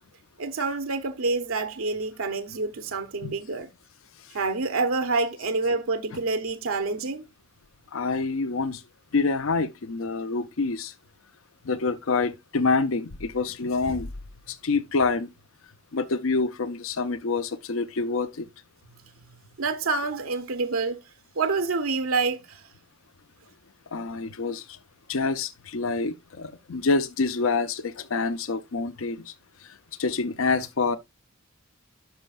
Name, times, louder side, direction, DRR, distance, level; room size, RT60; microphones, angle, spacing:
voice 1, 0.4-3.7 4.3-7.2 19.6-21.0 21.4-22.7, right 3 dB, 80° right, 0.8 m, -27 dB
voice 2, 7.9-8.8 9.1-10.9 11.7-14.1 14.5-15.3 15.9-18.5 23.9-24.6 25.1-29.3 30.0-31.0, left 4 dB, 70° left, 0.6 m, -26 dB
11.5 x 5.6 x 2.4 m
head